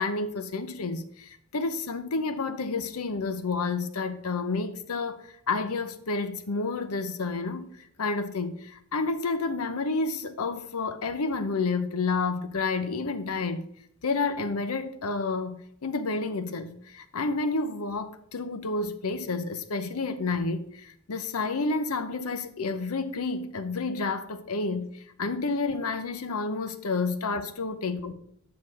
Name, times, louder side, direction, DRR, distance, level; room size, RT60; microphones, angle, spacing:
voice 1, 0.0-7.7 8.0-13.6 14.0-24.9 25.2-28.1, left 3 dB, 75° left, 0.7 m, -30 dB
7.6 x 6.1 x 4.8 m
head